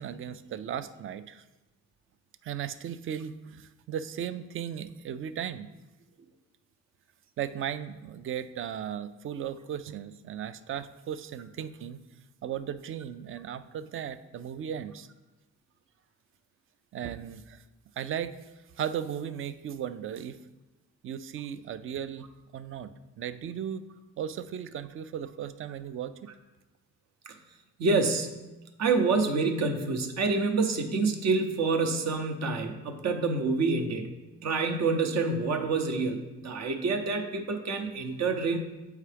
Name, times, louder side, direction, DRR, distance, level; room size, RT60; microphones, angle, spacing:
voice 1, 0.0-1.4 2.4-5.7 7.4-12.0 12.4-15.1 16.9-17.6 18.0-18.4 18.8-20.4 21.0-22.3 22.5-22.9 23.2-23.8 24.2-26.1, right 9 dB, 45° right, 13 dB, 0.4 m, -36 dB
voice 2, 27.8-28.4 28.8-34.1 34.4-38.6, right 4 dB, 60° right, 6 dB, 0.8 m, -27 dB
7.1 x 4.7 x 3.4 m, 1.1 s
cardioid pair, 90°, 30 cm